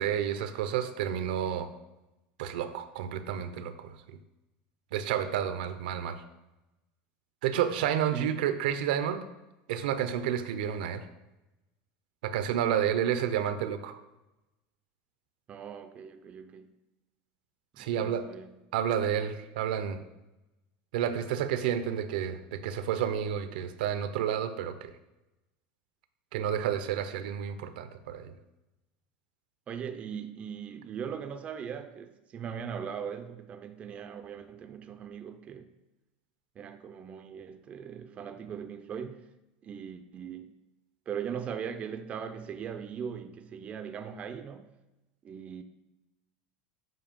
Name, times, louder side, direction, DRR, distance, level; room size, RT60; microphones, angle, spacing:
voice 1, 0.0-1.7 2.4-4.0 4.9-6.2 7.4-9.2 9.7-11.0 12.2-14.0 17.8-18.2 18.7-20.0 20.9-24.9 26.3-28.3, right 9 dB, 85° right, 0.6 m, -30 dB
voice 2, 15.5-16.7 17.7-18.6 29.7-35.7 36.6-39.3 39.6-40.5 41.1-44.7 45.2-45.6, right 7 dB, 30° right, 0.4 m, -40 dB
7.6 x 2.7 x 5.2 m
supercardioid pair, 135°, 5 cm